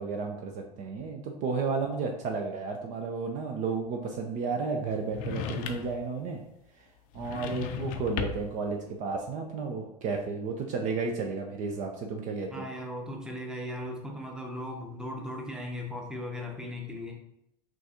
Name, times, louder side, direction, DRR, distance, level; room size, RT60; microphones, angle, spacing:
voice 1, 0.0-6.4 6.7-6.9 7.1-12.7, right 4 dB, 40° right, 3 dB, 0.5 m, -32 dB
sound 1, 5.1-6.0 7.1-8.6, left 7 dB, 45° left, 0.5 m, -35 dB
voice 2, 12.5-17.2, left 1 dB, 5° right, 2 dB, 0.8 m, -37 dB
6.1 x 2.5 x 2.8 m, 0.78 s
figure-of-eight pair, 80°, 20 cm